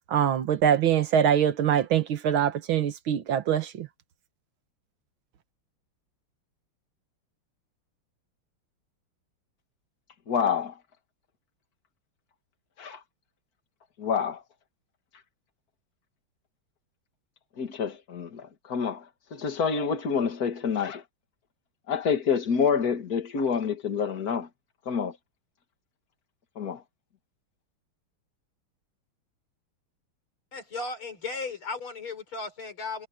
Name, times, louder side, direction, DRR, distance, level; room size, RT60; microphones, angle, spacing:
voice 1, 0.1-3.9, right 9 dB, 70° right, 1.9 m, -23 dB
voice 2, 10.3-10.7 12.8-13.0 14.0-14.4 17.6-19.0 19.3-21.0 21.9-24.5 24.9-25.2 26.6-26.8, left 6 dB, 45° left, 2.3 m, -27 dB
voice 3, 30.5-33.1, left 3 dB, 75° left, 5.5 m, -35 dB
omnidirectional pair, 2.3 m